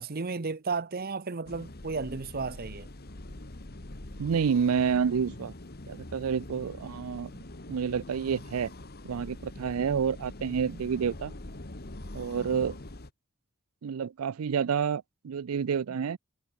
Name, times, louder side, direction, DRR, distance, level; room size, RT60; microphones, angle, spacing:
voice 1, 0.0-2.9, right 4 dB, 45° right, 0.9 m, -33 dB
sound 1, 1.5-13.1, left 1 dB, 45° left, 1.8 m, -44 dB
voice 2, 4.2-5.5 5.9-7.3 7.7-8.7 9.1-11.3 12.1-12.8 13.8-16.2, right 7 dB, 80° right, 0.4 m, -29 dB
head